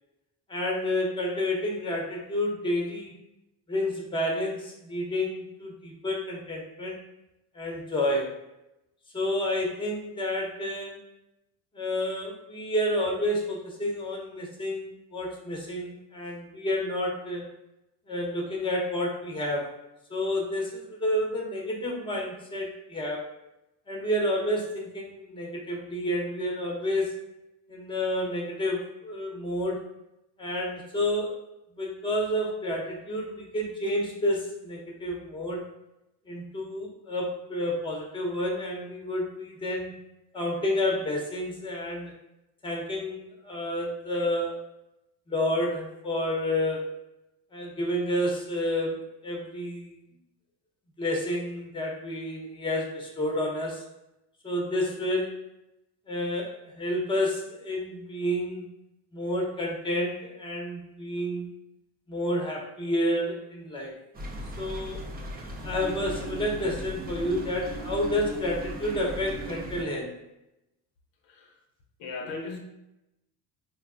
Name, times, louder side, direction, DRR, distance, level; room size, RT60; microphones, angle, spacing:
voice 1, 0.5-3.1 3.7-7.0 7.5-8.5 9.1-11.0 11.7-17.4 18.1-19.7 20.1-23.3 23.9-27.1 27.7-29.8 30.4-31.4 31.8-35.7 36.3-39.9 40.3-42.1 42.6-44.6 45.3-46.8 47.5-50.0 51.0-53.9 54.4-55.4 56.1-58.7 59.1-61.5 62.1-64.0 64.6-65.0 65.6-70.1, left 1 dB, 10° left, -1 dB, 0.7 m, -30 dB
sound 1, 64.1-69.8, equal, 20° right, 0.4 m, -37 dB
voice 2, 71.2-71.6 72.0-72.6, left 3 dB, 80° left, 2 dB, 0.7 m, -37 dB
4.5 x 2.2 x 2.4 m, 0.90 s
cardioid pair, 100°, 45 cm